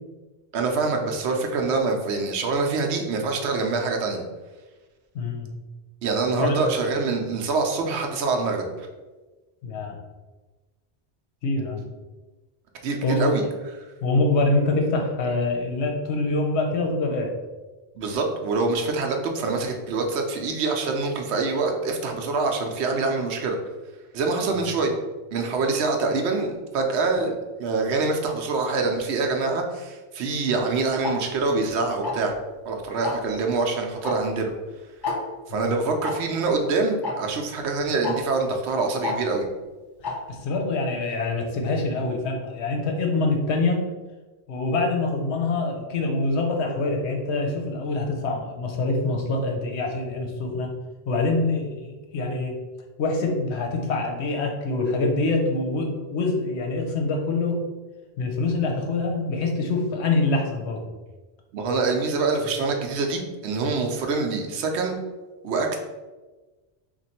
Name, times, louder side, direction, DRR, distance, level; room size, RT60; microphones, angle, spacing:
voice 1, 0.5-4.2 6.0-8.9 12.8-13.4 18.0-23.6 24.1-24.9 25.3-27.3 27.6-32.3 32.7-34.5 35.5-39.5 61.5-65.0 65.4-65.8, right 3 dB, 85° right, 3 dB, 0.9 m, -25 dB
voice 2, 5.1-5.5 6.4-6.6 9.6-10.0 11.4-11.8 13.0-13.4 14.0-17.3 35.5-35.7 40.3-43.8 44.5-50.7 51.1-52.6 53.0-57.6 58.2-60.9, left 2 dB, 80° left, 2 dB, 0.9 m, -25 dB
Tick-tock, 31.0-31.1 32.0-32.3 33.0-33.3 34.0-34.1 34.4-34.5 35.0-35.2 36.0-36.1 37.0-37.1 38.0-38.1 39.0-39.2 40.0-40.1, left 4 dB, 30° left, 0.4 m, -28 dB
3.0 x 2.5 x 4.2 m, 1.2 s
omnidirectional pair, 1.1 m